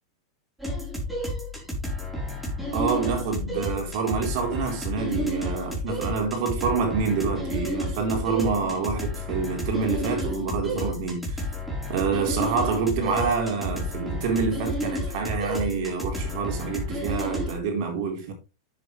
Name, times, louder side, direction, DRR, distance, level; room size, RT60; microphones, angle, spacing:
sound 1, 0.6-17.5, equal, 5° right, 4.4 m, -31 dB
voice 1, 2.7-11.5 11.9-18.3, right 5 dB, 55° right, 4.1 m, -27 dB
9.8 x 7.4 x 3.4 m
hypercardioid pair, 110°, 2 cm